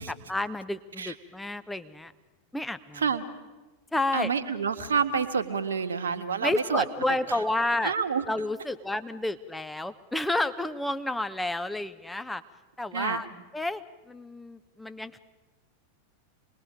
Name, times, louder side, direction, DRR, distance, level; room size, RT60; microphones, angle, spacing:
voice 1, 0.0-2.1 2.5-3.1 3.9-4.3 6.4-8.0 8.3-12.4 12.8-13.3 13.5-15.2, left 2 dB, 5° left, 11 dB, 0.9 m, -30 dB
voice 2, 3.0-3.3 4.1-6.8 7.8-8.2 12.9-13.2, right 6 dB, 70° right, 8 dB, 1.5 m, -28 dB
26.5 x 20.5 x 5.1 m, 1.2 s
figure-of-eight pair, 90°, 0 cm